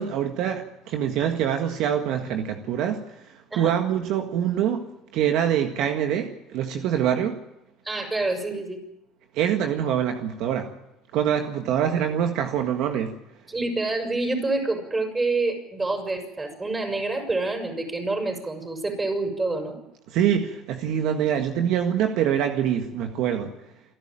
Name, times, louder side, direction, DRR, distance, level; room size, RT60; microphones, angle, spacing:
voice 1, 0.0-3.1 3.5-4.9 5.1-7.4 9.3-10.7 11.1-13.1 20.1-23.5, right 9 dB, 65° right, 5 dB, 1.7 m, -24 dB
voice 2, 7.8-8.8 13.5-19.8, right 2 dB, 20° right, 5 dB, 6.7 m, -27 dB
28.0 x 12.0 x 9.1 m, 0.91 s
supercardioid pair, 85°, 0 cm